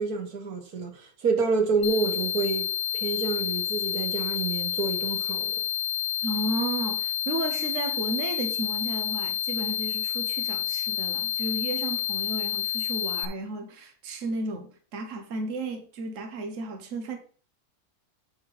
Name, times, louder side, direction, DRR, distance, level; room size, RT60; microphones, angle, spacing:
voice 1, 0.0-5.6, right 4 dB, 85° right, 1.9 m, -28 dB
sound 1, 1.8-13.2, left 10 dB, 60° left, 1.2 m, -29 dB
voice 2, 6.2-17.2, right 2 dB, 60° right, 1.5 m, -33 dB
9.5 x 4.4 x 4.8 m
omnidirectional pair, 1.6 m